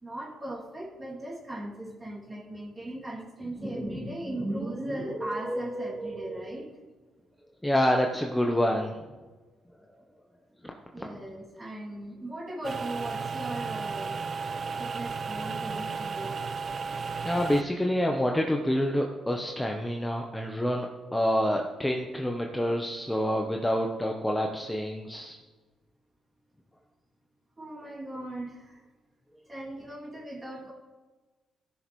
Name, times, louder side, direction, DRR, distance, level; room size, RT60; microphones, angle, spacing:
voice 1, 0.0-6.7 10.9-14.2 14.8-16.4 27.6-28.8 29.5-30.7, right 1 dB, 20° right, -4 dB, 2.7 m, -37 dB
voice 2, 7.6-9.0 17.2-25.4, equal, 10° left, 1 dB, 0.9 m, -27 dB
sound 1, 12.6-17.6, right 5 dB, 45° right, 0.4 m, -34 dB
15.0 x 6.4 x 3.2 m, 1.3 s
cardioid pair, 90°, 0 cm